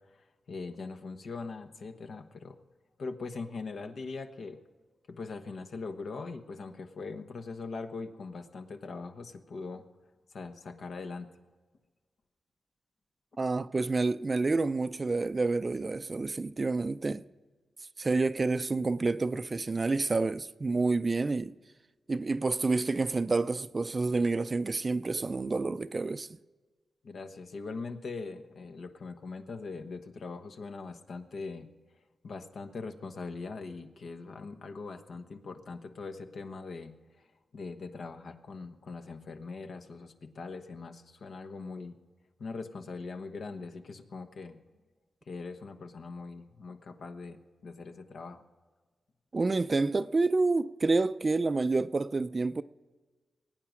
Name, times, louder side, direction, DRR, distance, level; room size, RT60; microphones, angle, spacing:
voice 1, 0.1-2.6 3.0-4.6 5.1-9.8 10.3-11.3 27.0-31.7 32.2-37.0 37.5-41.9 42.4-44.6 45.3-48.4, left 4 dB, 70° left, 1.2 m, -41 dB
voice 2, 13.4-17.2 18.0-21.5 22.1-26.3 49.3-52.6, right 3 dB, 35° right, 0.5 m, -28 dB
21.5 x 9.2 x 6.2 m
cardioid pair, 80°, 0 cm